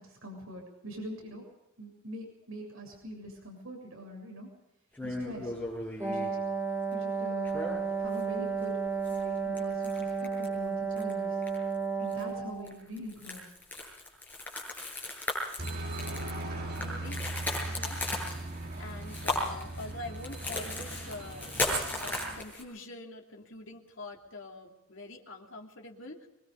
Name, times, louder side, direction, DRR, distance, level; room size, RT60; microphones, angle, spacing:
voice 1, 0.0-1.4 1.8-4.5 5.0-5.5 6.1-6.3 6.9-7.6 8.0-8.8 9.1-11.4 12.0-13.5, right 1 dB, 70° right, 2 dB, 7.3 m, -43 dB
sound 1, 5.0-6.3 7.4-8.2 8.5-8.6 9.0-10.6 10.9-11.1 11.4-11.8 12.1-12.2 12.7-22.6, left 1 dB, 10° left, 7.6 m, -36 dB
Wind instrument woodwind instrument, 6.0-12.8, right 5 dB, 10° right, 1.4 m, -32 dB
Aircraft, 15.6-22.4, right 2 dB, 45° right, 3.4 m, -39 dB
voice 2, 16.8-17.2 17.7-18.2 18.8-21.5 22.0-26.3, left 2 dB, 55° left, 1 dB, 3.1 m, -45 dB
24.5 x 23.0 x 5.2 m, 0.91 s
head